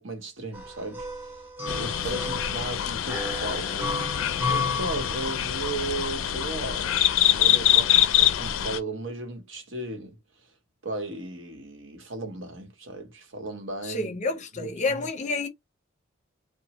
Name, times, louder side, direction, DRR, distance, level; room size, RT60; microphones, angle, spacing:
voice 1, 0.0-3.8 4.5-10.2 10.8-14.2 14.5-15.1, right 2 dB, 80° right, 0.9 m, -36 dB
sound 1, 0.5-5.7, left 3 dB, 10° right, 0.8 m, -33 dB
sound 2, 1.7-8.8, left 11 dB, 90° left, 0.4 m, -25 dB
voice 2, 13.8-15.5, left 3 dB, 40° left, 0.6 m, -29 dB
2.9 x 2.0 x 2.9 m
head